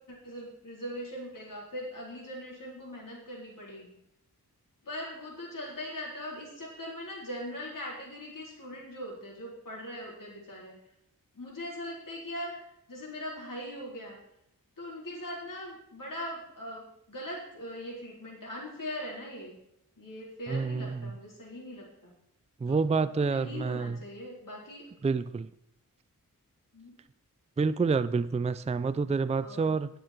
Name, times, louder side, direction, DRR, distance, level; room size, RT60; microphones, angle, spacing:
voice 1, 0.1-3.9 4.8-10.8 11.4-12.6 12.9-14.2 14.8-19.5 20.0-22.1 22.7-22.8 23.2-24.9 26.7-27.0 29.4-29.7, equal, 60° left, -3 dB, 4.2 m, -40 dB
voice 2, 20.5-21.1 22.6-24.0 25.0-25.5 27.6-29.9, right 4 dB, 20° right, 14 dB, 0.4 m, -28 dB
19.5 x 6.6 x 4.5 m, 0.77 s
wide cardioid pair, 115°, 36 cm